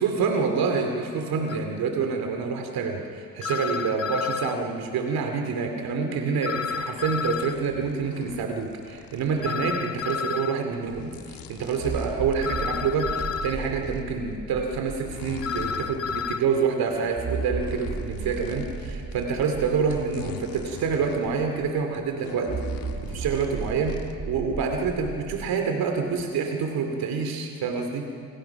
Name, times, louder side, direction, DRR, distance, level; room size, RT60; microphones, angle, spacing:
voice 1, 0.0-22.5 23.0-23.9 24.3-28.0, right 5 dB, 70° right, 4 dB, 2.6 m, -27 dB
sound 1, 1.5-1.6 3.4-4.6 6.4-7.6 9.4-10.6 12.4-13.6 15.4-16.4, left 6 dB, 40° left, 0.7 m, -30 dB
sound 2, 6.5-10.2 10.7-14.3 14.7-19.5 19.7-24.1, left 7 dB, 65° left, 2.1 m, -43 dB
sound 3, 10.9-11.0 11.8-16.3 17.2-21.8 22.5-25.5, right 5 dB, 35° right, 1.3 m, -35 dB
28.5 x 27.0 x 5.9 m, 2.5 s
cardioid pair, 155°, 37 cm